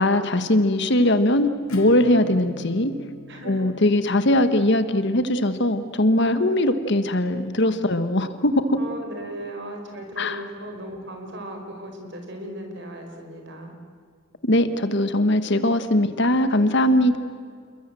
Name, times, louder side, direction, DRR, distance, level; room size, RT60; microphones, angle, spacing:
voice 1, 0.0-2.9 3.5-8.8 10.2-10.4 14.4-17.2, left 1 dB, 55° left, 10 dB, 1.4 m, -20 dB
Acoustic guitar / Strum, 1.7-7.2, left 3 dB, 75° left, 2.3 m, -42 dB
voice 2, 3.3-3.7 6.3-6.5 8.8-13.8, right 1 dB, 55° right, 4 dB, 4.9 m, -37 dB
29.0 x 22.0 x 7.7 m, 2.1 s
head